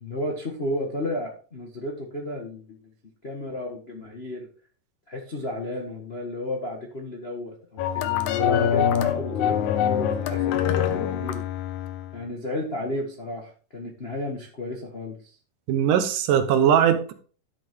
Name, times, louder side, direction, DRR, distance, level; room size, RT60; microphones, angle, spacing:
voice 1, 0.0-2.8 3.2-4.5 5.1-11.4 12.1-15.3, left 1 dB, 45° left, 0.7 m, -33 dB
sound 1, 7.8-12.2, left 9 dB, 75° left, 2.1 m, -24 dB
voice 2, 15.7-17.1, right 9 dB, 75° right, 2.5 m, -20 dB
11.5 x 6.8 x 3.6 m
omnidirectional pair, 3.8 m